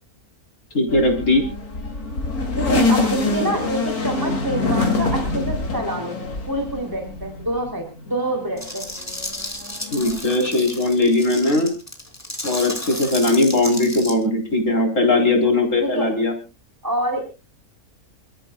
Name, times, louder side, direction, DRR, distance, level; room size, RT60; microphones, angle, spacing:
voice 1, 0.7-1.4 9.9-11.7 12.4-16.3, left 2 dB, 55° left, 3 dB, 4.4 m, -19 dB
sound 1, 0.9-7.8 8.2-10.2, left 3 dB, 75° left, 3.2 m, -25 dB
voice 2, 2.6-6.2 6.5-8.9 15.8-16.1 16.8-17.3, right 1 dB, 15° right, 3 dB, 3.2 m, -26 dB
sound 2, 8.6-14.1, left 1 dB, 10° left, 2.8 m, -33 dB
29.0 x 13.5 x 2.3 m, 0.30 s
omnidirectional pair, 1.6 m